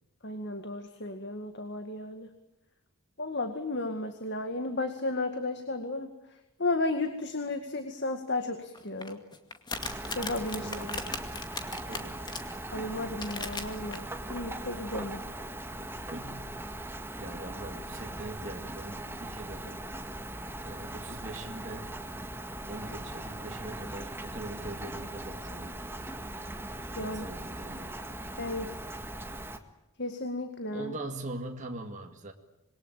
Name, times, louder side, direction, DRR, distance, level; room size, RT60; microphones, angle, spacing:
voice 1, 0.2-2.3 3.2-6.1 6.6-9.2 10.2-10.7 12.7-15.2 27.0-27.3 28.4-28.7 30.0-31.0, left 2 dB, 50° left, 7 dB, 2.2 m, -33 dB
sound 1, 8.7-12.5 13.0-14.0, left 4 dB, 20° left, 2.2 m, -37 dB
Rain, 9.8-29.6, right 1 dB, 10° right, 1.8 m, -40 dB
voice 2, 10.5-11.2 11.7-12.3 16.1-16.9 17.2-19.8 20.6-21.9 22.7-25.8 26.9-27.9 30.7-32.3, right 2 dB, 35° right, 3 dB, 2.2 m, -42 dB
26.5 x 22.5 x 9.1 m, 0.91 s
head